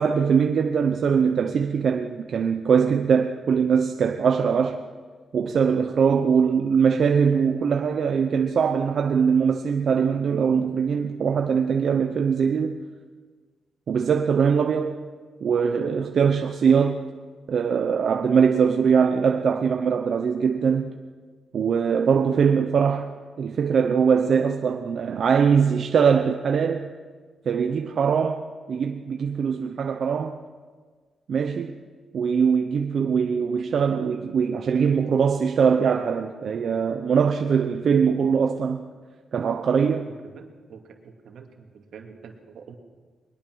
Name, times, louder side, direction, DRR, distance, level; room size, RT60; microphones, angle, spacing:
voice 1, 0.0-4.8 5.3-12.8 13.9-15.0 15.4-17.1 17.5-20.9 21.5-23.1 23.4-26.9 27.5-30.4 31.3-31.8 32.1-38.8 39.3-40.1, right 6 dB, 55° right, 0.9 m, -22 dB
voice 2, 40.0-42.7, right 6 dB, 80° right, 2.5 m, -46 dB
22.0 x 20.5 x 6.3 m
wide cardioid pair, 155°, 0 cm